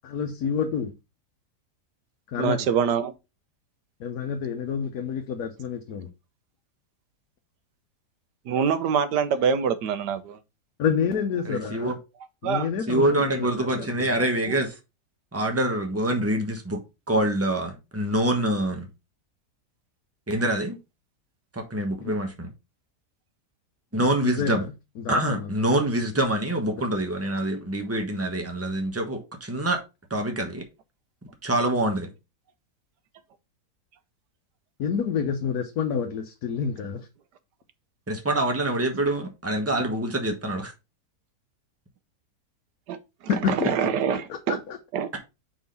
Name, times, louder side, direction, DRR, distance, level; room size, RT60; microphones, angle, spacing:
voice 1, 0.0-0.9 2.3-2.7 4.0-6.1 10.8-12.0 12.4-14.2 24.2-25.5 34.8-37.1 43.3-43.7 44.3-44.8, left 6 dB, 70° left, 1.3 m, -28 dB
voice 2, 2.4-3.1 8.5-10.4 12.4-12.7 14.5-14.6 42.9-43.0 43.2-44.6 44.9-45.1, right 7 dB, 90° right, 1.4 m, -25 dB
voice 3, 11.4-11.9 12.9-14.8 15.3-16.8 17.1-18.9 20.3-20.8 21.5-22.5 23.9-24.6 25.1-29.8 30.1-30.6 31.4-32.1 38.1-40.7, right 1 dB, 10° right, 1.1 m, -25 dB
5.1 x 4.1 x 5.2 m
omnidirectional pair, 1.7 m